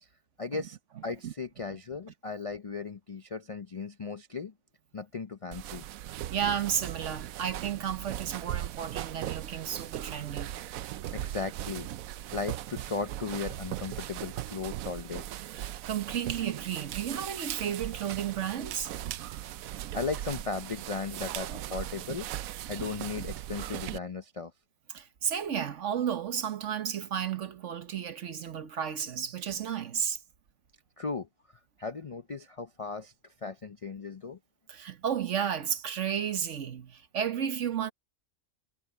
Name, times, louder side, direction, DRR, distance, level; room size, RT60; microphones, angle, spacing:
voice 1, 0.4-0.8 1.0-4.5 4.9-5.8 11.1-11.9 12.3-15.2 19.9-22.3 22.7-24.5 31.0-31.3 31.8-33.1 33.4-34.4, left 4 dB, 45° left, 0.4 m, -36 dB
sound 1, 5.5-24.0, right 12 dB, 75° right, 1.0 m, -38 dB
voice 2, 6.3-10.5 15.5-18.9 24.9-30.2 34.7-37.9, right 8 dB, 60° right, 1.3 m, -33 dB
omnidirectional pair, 1.5 m